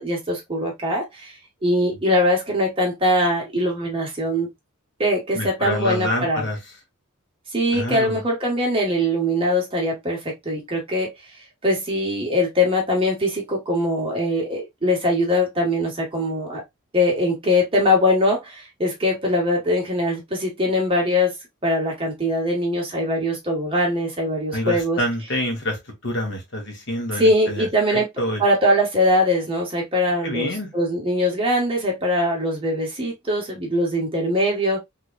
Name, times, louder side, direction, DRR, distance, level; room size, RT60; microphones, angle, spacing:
voice 1, 0.0-1.3 1.6-4.5 5.0-6.5 7.5-11.1 11.6-16.6 16.9-21.3 21.6-25.0 27.2-28.1 28.4-34.8, left 1 dB, 25° right, 1.4 m, -22 dB
voice 2, 5.3-6.6 7.7-8.2 24.5-28.4 30.2-30.7, left 1 dB, 55° left, 1.4 m, -27 dB
3.6 x 3.2 x 2.3 m
head